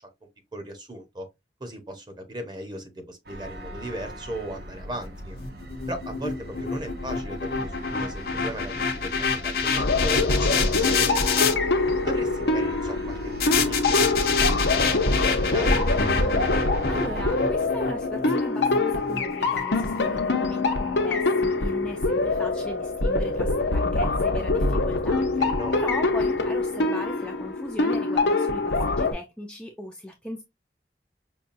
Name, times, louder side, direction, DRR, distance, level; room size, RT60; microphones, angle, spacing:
voice 1, 0.5-1.3 1.6-5.4 5.9-11.5 12.0-15.9 25.4-25.8, right 1 dB, 25° right, 1.0 m, -37 dB
sound 1, 3.3-17.3, right 1 dB, 60° right, 0.9 m, -38 dB
sound 2, 5.4-11.5 13.4-19.6, left 5 dB, 55° left, 0.7 m, -27 dB
sound 3, 9.8-29.1, left 2 dB, 90° left, 0.8 m, -24 dB
voice 2, 16.6-30.4, left 1 dB, 5° left, 0.5 m, -37 dB
5.6 x 2.3 x 2.6 m
head